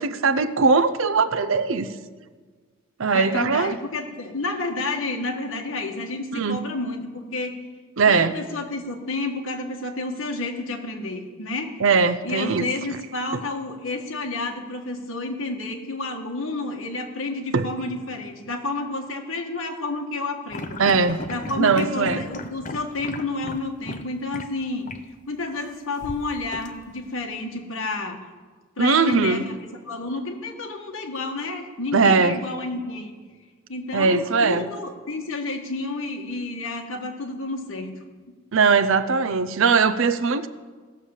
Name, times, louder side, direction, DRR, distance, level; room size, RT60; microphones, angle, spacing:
voice 1, 0.0-1.9 3.0-3.8 6.3-6.6 8.0-8.3 11.8-12.7 17.5-17.7 20.8-21.2 21.6-22.2 28.8-29.5 31.9-32.4 33.9-34.7 38.5-40.5, right 4 dB, 60° right, 12 dB, 0.6 m, -20 dB
voice 2, 3.1-7.6 8.1-11.8 12.2-20.8 21.3-24.9 25.3-28.2 28.8-29.5 29.9-33.1 33.7-37.9 38.3-38.4, left 2 dB, 65° left, 2 dB, 1.6 m, -30 dB
sound 1, 20.5-24.1 24.3-24.5 24.9-25.0 26.0-27.1, left 2 dB, 35° left, 0.6 m, -35 dB
16.0 x 6.6 x 7.2 m, 1.5 s
head